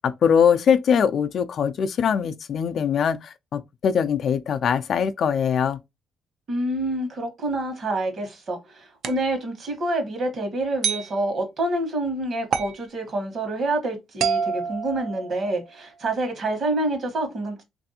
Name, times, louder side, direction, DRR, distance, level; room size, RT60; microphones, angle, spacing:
voice 1, 0.0-5.8, left 7 dB, 60° left, 0.4 m, -22 dB
voice 2, 6.5-17.6, right 2 dB, 55° right, 1.2 m, -27 dB
sound 1, 9.0-9.3 10.8-11.1 12.5-12.8 14.2-15.6, right 6 dB, 75° right, 0.5 m, -27 dB
3.2 x 2.6 x 2.7 m
cardioid pair, 90°, 0 cm